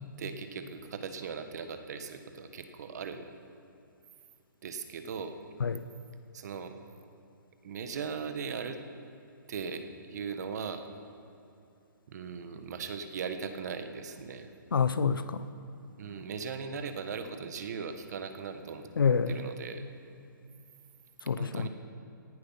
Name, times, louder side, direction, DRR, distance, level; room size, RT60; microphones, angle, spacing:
voice 1, 0.2-3.3 4.6-5.4 6.3-6.7 7.6-8.8 9.5-10.9 12.1-14.5 16.0-18.9 19.3-19.8 21.4-21.7, right 6 dB, 55° right, 8 dB, 1.4 m, -38 dB
voice 2, 14.7-15.4 19.0-19.4 21.2-21.7, left 6 dB, 85° left, 12 dB, 0.8 m, -27 dB
18.0 x 11.5 x 5.8 m, 2.7 s
hypercardioid pair, 150°, 11 cm